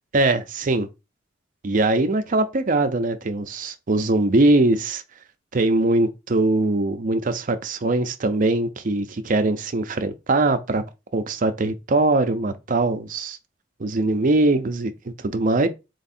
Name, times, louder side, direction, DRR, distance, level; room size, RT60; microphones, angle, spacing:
voice 1, 0.1-0.9 1.6-5.0 5.5-10.8 11.1-13.4 13.8-15.7, right 2 dB, 45° right, 0.6 m, -21 dB
3.5 x 3.1 x 4.2 m
head